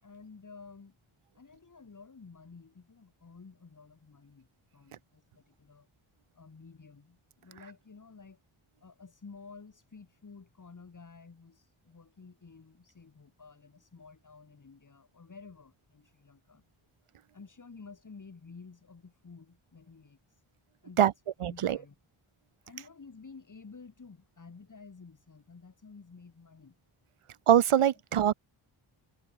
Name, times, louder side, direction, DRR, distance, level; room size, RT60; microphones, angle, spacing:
voice 1, 0.0-1.0 1.3-4.5 4.7-5.9 6.3-8.4 8.8-16.6 17.3-20.4 20.8-21.1 21.5-22.0 22.6-26.8, left 4 dB, 40° left, 5.5 m, -52 dB
voice 2, 21.4-21.8 27.5-28.3, right 10 dB, 90° right, 1.2 m, -23 dB
wide cardioid pair, 175°, 49 cm